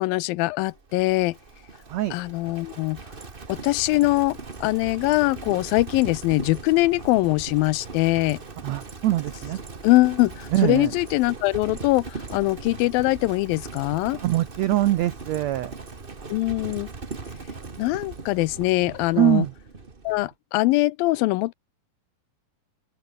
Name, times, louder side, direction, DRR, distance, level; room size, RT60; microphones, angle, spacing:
voice 1, 0.0-1.4 2.1-3.0 3.5-8.4 9.8-14.2 16.3-16.9 17.8-19.4 20.0-21.5, left 20 dB, 90° left, 2.4 m, -22 dB
Livestock farm animals working animals, 0.7-20.3, right 4 dB, 40° right, 0.7 m, -39 dB
voice 2, 8.6-9.6 10.5-10.9 14.2-15.7 19.1-19.5, right 15 dB, 85° right, 1.5 m, -23 dB
omnidirectional pair, 4.1 m